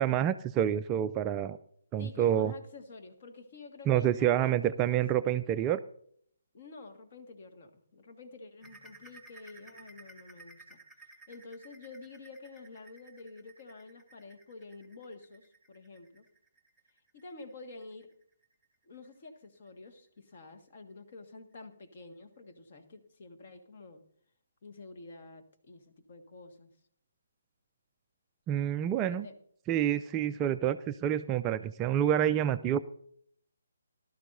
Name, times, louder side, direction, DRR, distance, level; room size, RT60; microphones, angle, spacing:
voice 1, 0.0-1.6 1.9-2.5 3.9-5.8 28.5-29.3 29.7-32.8, right 10 dB, 20° right, 11 dB, 0.4 m, -28 dB
voice 2, 2.0-4.6 4.9-5.0 6.5-10.8 11.3-16.2 17.1-18.1 18.8-24.0 24.6-26.7 29.1-29.3, left 3 dB, 40° left, 6 dB, 1.7 m, -49 dB
sound 1, 8.6-19.9 20.3-20.5 20.9-21.0 21.5-21.6, right 2 dB, ahead, 1.4 m, -57 dB
19.0 x 12.5 x 2.6 m, 0.64 s
figure-of-eight pair, 140°, 0 cm